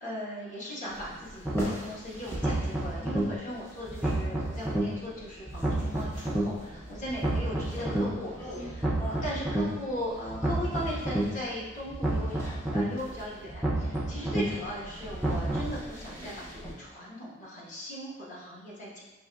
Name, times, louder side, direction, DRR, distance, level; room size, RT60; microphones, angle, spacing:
voice 1, 0.0-9.0 9.2-12.4 12.7-19.0, equal, 40° left, -6 dB, 1.1 m, -38 dB
sound 1, 0.9-16.7, equal, 15° left, 0.8 m, -44 dB
sound 2, 1.4-1.6 2.3-3.2 3.9-4.8 5.5-6.4 7.1-8.0 8.7-9.6 10.3-11.2 11.9-12.8 13.5-14.4 15.1-15.8, right 1 dB, ahead, 0.4 m, -29 dB
5.5 x 2.9 x 2.2 m, 1.1 s
head